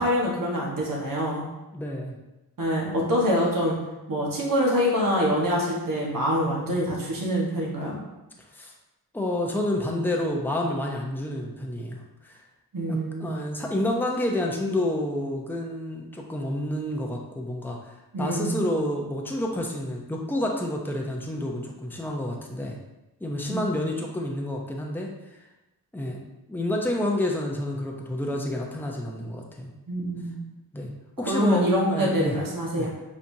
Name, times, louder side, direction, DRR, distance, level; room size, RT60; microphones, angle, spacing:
voice 1, 0.0-1.4 2.6-3.7 4.1-7.9 12.7-13.4 18.1-18.6 23.5-23.7 29.9-30.3 31.3-32.9, equal, 55° right, -4 dB, 1.5 m, -25 dB
voice 2, 1.7-2.2 8.5-8.7 9.1-12.4 12.9-17.8 18.2-22.8 23.2-25.1 25.9-26.2 26.5-29.7 30.7-30.9 31.2-32.4 32.8-32.9, left 1 dB, 5° left, 0 dB, 0.8 m, -29 dB
5.6 x 3.3 x 2.8 m, 1.0 s
cardioid pair, 50°, 39 cm